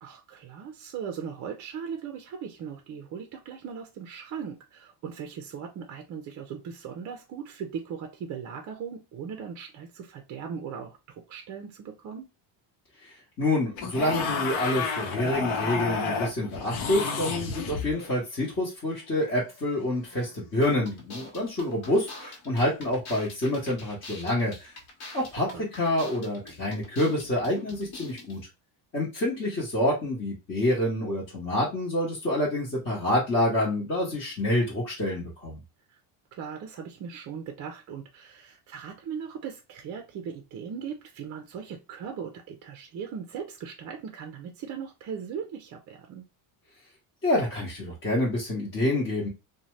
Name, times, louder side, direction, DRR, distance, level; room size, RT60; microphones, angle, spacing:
voice 1, 0.0-12.2 25.5-25.7 36.3-46.2, right 7 dB, 40° right, 0.4 m, -38 dB
voice 2, 13.0-24.7 25.1-28.4 28.9-35.6 47.2-49.3, left 1 dB, 25° left, 0.9 m, -27 dB
sound 1, 13.8-18.2 20.4-20.6, left 5 dB, 75° left, 0.8 m, -31 dB
sound 2, 20.6-28.4, left 2 dB, 50° left, 1.1 m, -45 dB
2.6 x 2.1 x 3.1 m
cardioid pair, 140°, 48 cm